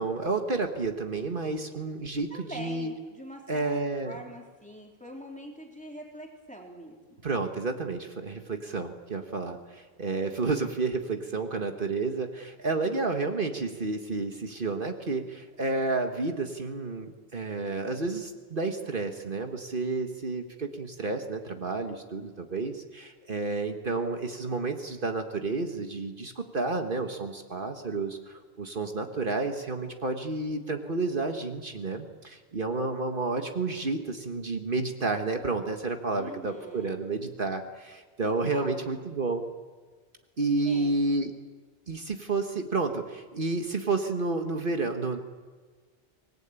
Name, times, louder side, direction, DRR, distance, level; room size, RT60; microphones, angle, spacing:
voice 1, 0.0-2.9 3.5-4.2 7.2-39.4 40.4-41.3 41.9-45.2, right 3 dB, 60° right, 5 dB, 1.6 m, -30 dB
voice 2, 2.3-3.7 4.0-7.2 12.8-13.2 36.2-37.0 38.2-38.9 40.6-41.0, equal, 5° left, 0 dB, 3.4 m, -44 dB
25.5 x 19.0 x 8.9 m, 1.4 s
omnidirectional pair, 1.0 m